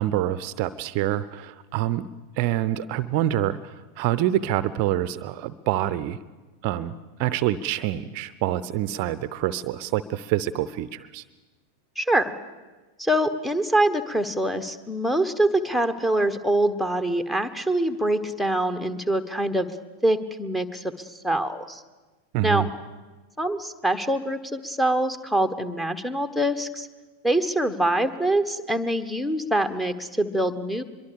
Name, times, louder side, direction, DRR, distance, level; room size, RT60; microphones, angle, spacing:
voice 1, 0.0-2.1 2.4-6.2 6.6-6.9 7.2-11.2 22.3-22.7, right 13 dB, 45° right, 16 dB, 0.7 m, -26 dB
voice 2, 12.0-12.3 13.0-19.7 20.0-20.8 21.2-21.8 22.4-22.7 23.4-26.9 27.2-30.8, right 1 dB, 5° left, 6 dB, 1.4 m, -24 dB
23.5 x 23.0 x 7.0 m, 1.2 s
figure-of-eight pair, 90°, 0 cm